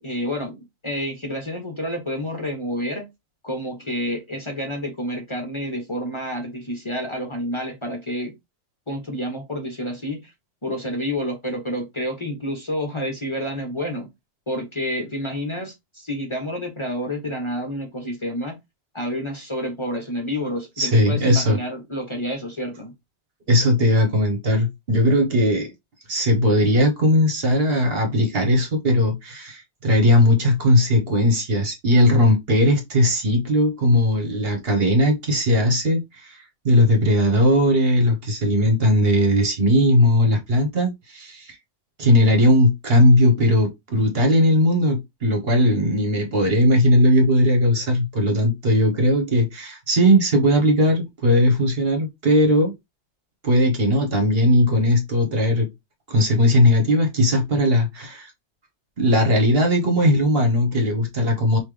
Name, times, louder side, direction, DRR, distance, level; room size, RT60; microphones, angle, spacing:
voice 1, 0.0-3.1 3.4-8.3 8.9-10.3 10.6-14.1 14.5-18.6 18.9-22.9, equal, 25° left, 1.0 m, -29 dB
voice 2, 20.8-21.6 23.5-25.7 26.1-36.4 36.6-41.5 42.0-52.7 53.4-55.7 56.1-58.3 59.0-61.6, left 1 dB, 55° right, 1.5 m, -18 dB
5.6 x 2.7 x 3.3 m
omnidirectional pair, 1.2 m